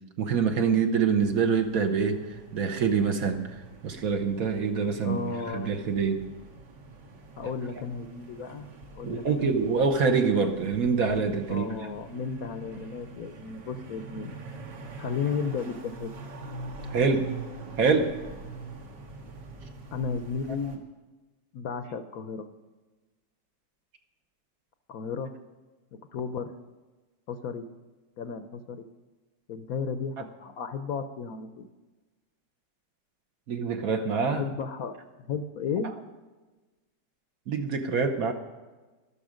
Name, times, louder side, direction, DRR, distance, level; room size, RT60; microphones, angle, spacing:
voice 1, 0.2-2.2 2.5-3.5 3.8-5.2 5.5-6.2 9.0-11.6 16.9-17.3 17.8-18.2 33.5-34.4 37.5-38.3, right 5 dB, 60° right, 6 dB, 1.3 m, -25 dB
sound 1, 1.2-20.8, right 3 dB, 75° right, 2.1 m, -44 dB
voice 2, 5.0-5.8 7.4-8.7 8.9-9.5 11.5-14.3 15.0-16.1 19.9-20.8 21.5-22.5 24.9-25.3 26.1-26.5 27.3-27.7 28.2-28.8 29.5-31.7 34.3-35.0 35.3-35.9, left 5 dB, 65° left, 9 dB, 1.0 m, -34 dB
12.5 x 12.5 x 5.1 m, 1.2 s
omnidirectional pair, 1.9 m